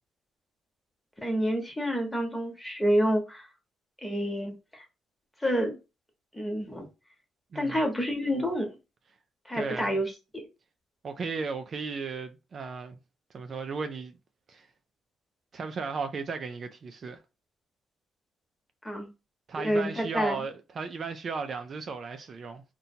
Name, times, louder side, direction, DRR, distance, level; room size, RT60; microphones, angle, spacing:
voice 1, 1.2-3.5 4.0-4.8 5.4-5.8 6.3-6.9 7.5-8.7 9.5-10.1 18.8-19.1 19.6-20.4, equal, 10° left, 1.0 m, -28 dB
voice 2, 7.5-7.8 9.5-10.0 11.0-13.0 13.3-14.1 14.5-14.7 15.5-17.2 19.5-22.6, right 5 dB, 50° right, 0.4 m, -35 dB
2.7 x 2.2 x 2.7 m
cardioid pair, 90°, 0 cm